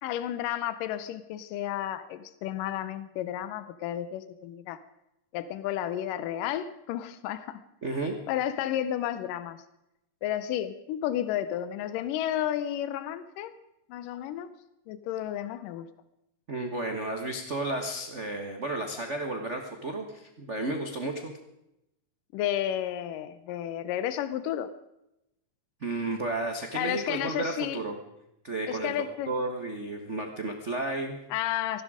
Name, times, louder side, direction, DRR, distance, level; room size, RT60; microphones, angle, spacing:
voice 1, 0.0-4.8 5.3-7.6 8.3-9.6 10.2-13.5 13.9-14.5 14.9-15.9 22.3-24.7 26.7-27.8 28.7-29.3 31.3-31.8, left 11 dB, 90° left, 13 dB, 2.4 m, -32 dB
voice 2, 7.8-8.1 16.5-21.3 25.8-28.0 28.4-28.9 29.3-31.2, right 2 dB, 70° right, 3 dB, 0.6 m, -32 dB
18.5 x 15.5 x 5.0 m, 0.86 s
omnidirectional pair, 3.7 m